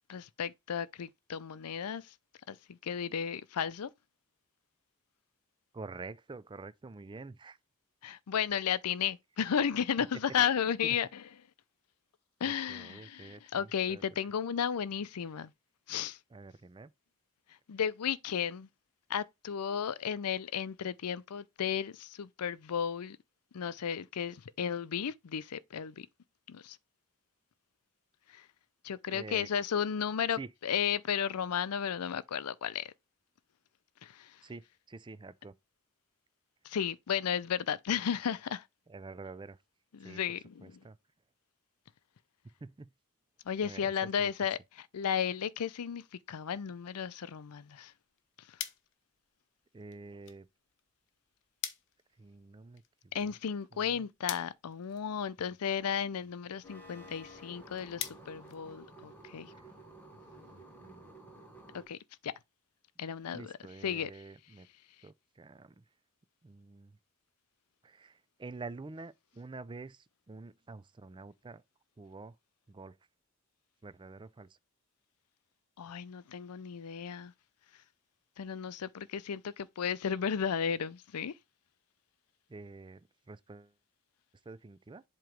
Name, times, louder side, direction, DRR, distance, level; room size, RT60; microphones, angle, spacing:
voice 1, 0.1-2.1 2.5-3.9 8.0-11.2 12.4-15.5 15.9-16.2 17.7-18.7 19.1-23.2 23.5-26.1 26.5-26.8 28.3-28.5 28.8-32.9 34.0-34.4 36.6-38.6 39.9-40.8 43.5-47.9 48.5-48.6 53.1-59.5 61.7-62.0 62.2-62.3 63.0-63.5 63.8-64.1 75.8-77.3 78.4-81.3, left 8 dB, 85° left, 0.5 m, -34 dB
voice 2, 5.7-7.6 10.8-11.0 12.4-14.0 16.3-16.9 29.1-29.5 30.4-30.5 34.4-35.5 38.9-39.6 40.0-40.2 40.6-41.0 42.6-42.9 43.6-43.9 44.2-44.3 49.7-50.5 52.2-53.3 53.7-54.1 59.5-59.7 60.5-61.1 63.3-64.7 65.0-65.8 66.4-66.9 67.8-71.6 72.0-72.3 72.7-73.0 73.8-74.5 82.5-83.7 84.5-85.0, right 3 dB, 20° right, 0.4 m, -47 dB
sound 1, 47.9-59.3, left 11 dB, 55° left, 0.8 m, -48 dB
sound 2, 56.6-61.9, right 1 dB, 10° left, 1.7 m, -52 dB
7.7 x 3.0 x 5.1 m
head